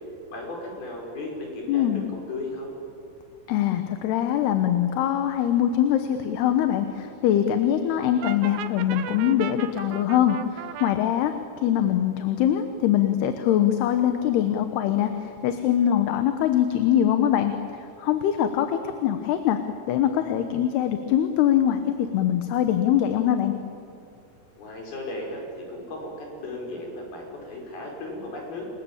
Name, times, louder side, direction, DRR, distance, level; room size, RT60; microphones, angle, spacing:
voice 1, 0.3-2.7 24.6-28.7, left 2 dB, 65° left, 0 dB, 7.3 m, -35 dB
voice 2, 1.7-2.1 3.5-19.6 19.9-21.8 22.1-23.5, left 10 dB, 80° left, 8 dB, 3.1 m, -23 dB
Brass instrument, 8.2-10.9, right 11 dB, 75° right, 2.6 m, -36 dB
29.0 x 21.5 x 8.8 m, 2.7 s
omnidirectional pair, 4.8 m